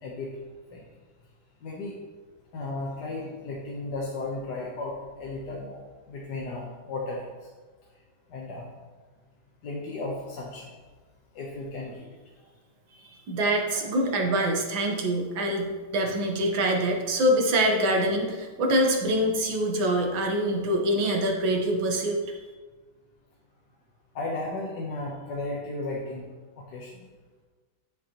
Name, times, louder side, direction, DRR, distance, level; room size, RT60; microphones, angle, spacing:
voice 1, 1.6-2.0 2.5-5.8 6.1-7.2 8.3-8.7 9.6-10.7 11.3-12.1 24.1-26.3 26.6-27.0, left 2 dB, 60° left, -3 dB, 1.6 m, -34 dB
voice 2, 13.3-22.4, right 1 dB, 70° right, 1 dB, 1.9 m, -25 dB
12.5 x 6.3 x 3.0 m, 1.4 s
omnidirectional pair, 2.2 m